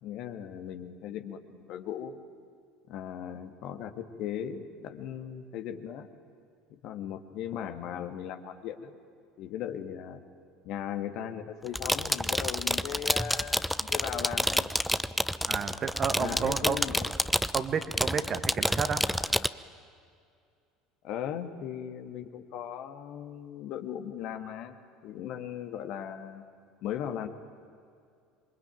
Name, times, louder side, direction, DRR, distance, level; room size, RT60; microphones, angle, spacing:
voice 1, 0.0-2.2 2.9-6.1 6.7-8.9 9.4-10.2 10.6-14.7 16.2-17.1 21.0-24.8 25.0-26.4 26.8-27.3, left 9 dB, 55° left, 7 dB, 1.9 m, -38 dB
sound 1, 11.7-19.5, equal, ahead, 0.8 m, -29 dB
voice 2, 15.5-16.8 17.5-19.0, right 6 dB, 40° right, 9 dB, 1.9 m, -31 dB
27.0 x 24.0 x 9.2 m, 2.3 s
figure-of-eight pair, 65°, 0 cm